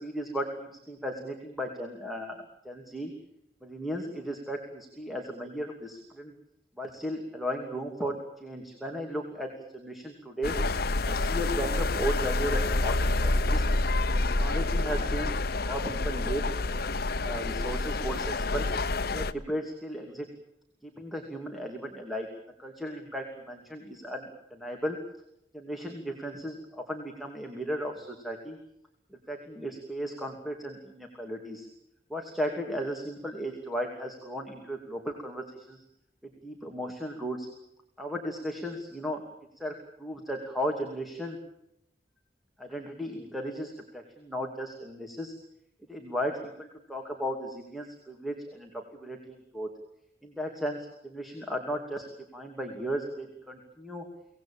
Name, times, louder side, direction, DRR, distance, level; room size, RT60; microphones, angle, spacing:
voice 1, 0.0-2.4 2.6-3.1 3.6-6.3 6.8-10.5 11.1-13.7 14.4-15.3 15.6-18.7 19.1-20.3 21.0-22.3 22.6-25.0 25.5-28.6 29.3-31.7 32.1-35.8 36.4-37.5 38.0-39.2 39.6-41.4 42.6-45.3 45.9-49.7 50.2-52.0 52.3-54.0, equal, ahead, 2 dB, 2.7 m, -35 dB
sound 1, 10.4-19.3, left 2 dB, 60° left, 0.9 m, -28 dB
24.5 x 19.0 x 8.9 m, 0.79 s
head